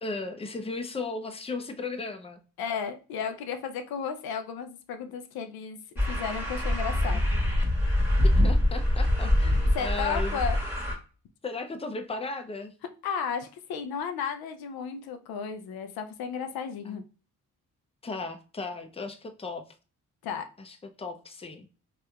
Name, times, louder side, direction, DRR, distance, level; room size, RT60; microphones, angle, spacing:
voice 1, 0.0-2.4 7.1-7.3 8.2-10.4 11.4-12.7 16.9-17.0 18.0-19.6 20.6-21.7, left 3 dB, 15° left, 7 dB, 0.5 m, -36 dB
voice 2, 2.6-5.8 6.1-7.4 9.7-10.6 13.0-17.0 20.2-20.5, left 6 dB, 85° left, 7 dB, 0.5 m, -34 dB
sound 1, 6.0-11.0, left 1 dB, 5° right, 1.3 m, -24 dB
3.2 x 2.9 x 2.3 m, 0.35 s
supercardioid pair, 55°, 36 cm